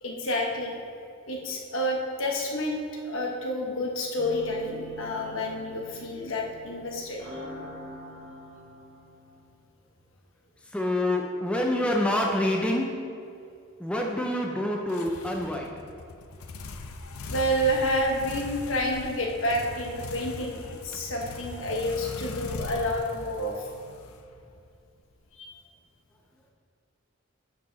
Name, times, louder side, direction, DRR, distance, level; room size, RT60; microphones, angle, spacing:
voice 1, 0.0-0.7 1.3-7.3 17.3-23.7 25.4-25.5, equal, 70° left, 0 dB, 1.2 m, -29 dB
sound 1, 4.2-9.5, equal, 70° right, 1.5 m, -44 dB
voice 2, 10.7-13.0 13.8-15.7, left 1 dB, 5° left, 0 dB, 0.5 m, -27 dB
sound 2, 14.9-24.7, left 3 dB, 85° left, 0.6 m, -40 dB
8.2 x 6.7 x 4.0 m, 2.5 s
head